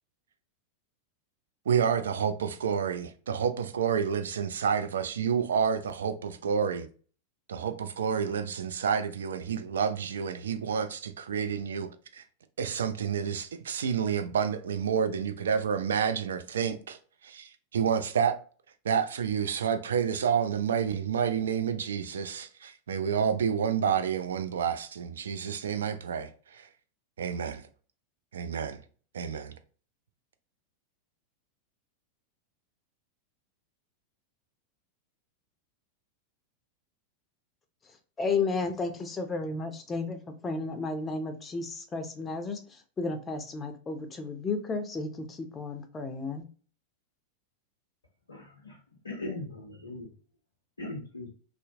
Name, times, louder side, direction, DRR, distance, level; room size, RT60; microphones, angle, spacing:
voice 1, 1.7-6.9 7.5-12.2 12.6-18.4 18.8-26.7 27.2-27.7 28.3-28.8 29.1-29.5, right 7 dB, 65° right, 0.3 m, -29 dB
voice 2, 38.2-46.4, left 4 dB, 20° left, 0.5 m, -33 dB
voice 3, 48.3-50.1 50.8-51.3, left 2 dB, 75° left, 0.5 m, -39 dB
2.7 x 2.0 x 2.7 m
figure-of-eight pair, 90°, 0 cm